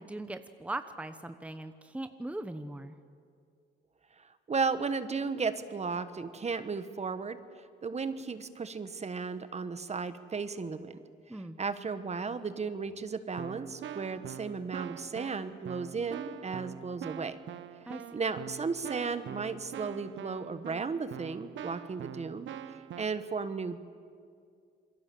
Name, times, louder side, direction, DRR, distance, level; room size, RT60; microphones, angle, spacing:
voice 1, 0.0-3.0 11.3-11.6 17.9-18.2, right 1 dB, 5° right, 9 dB, 1.1 m, -40 dB
voice 2, 4.2-11.0 11.6-17.4 18.1-23.8, right 5 dB, 35° right, 12 dB, 1.4 m, -35 dB
Keyboard (musical), 12.9-13.0 13.4-23.1, right 10 dB, 75° right, 1.0 m, -44 dB
27.0 x 22.5 x 7.8 m, 2.3 s
cardioid pair, 90°, 20 cm